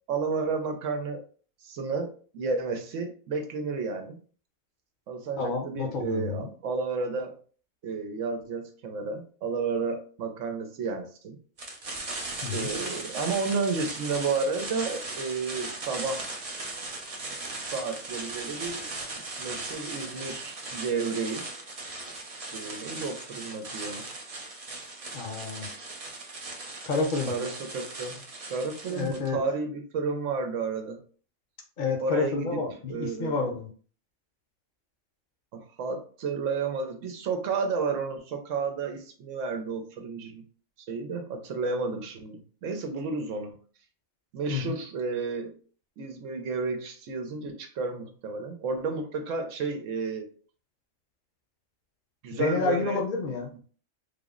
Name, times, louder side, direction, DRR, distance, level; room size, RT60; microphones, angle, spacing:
voice 1, 0.1-1.2 1.6-4.2 5.1-7.3 7.8-11.4 12.5-16.3 17.6-18.8 19.4-21.4 22.5-24.1 27.3-31.0 32.0-32.6 32.9-33.4 35.5-40.4 40.8-43.6 44.3-45.6 46.0-50.3 52.2-53.0 53.5-53.6, right 4 dB, 75° right, 5 dB, 1.0 m, -32 dB
voice 2, 5.4-6.5 12.4-12.7 25.1-25.7 26.8-27.3 28.9-29.4 31.8-33.7 44.5-44.8 52.3-53.5, left 4 dB, 45° left, 3 dB, 0.8 m, -29 dB
sound 1, 11.6-29.3, right 2 dB, 40° right, 0.5 m, -38 dB
3.6 x 2.0 x 3.6 m, 0.42 s
omnidirectional pair, 1.3 m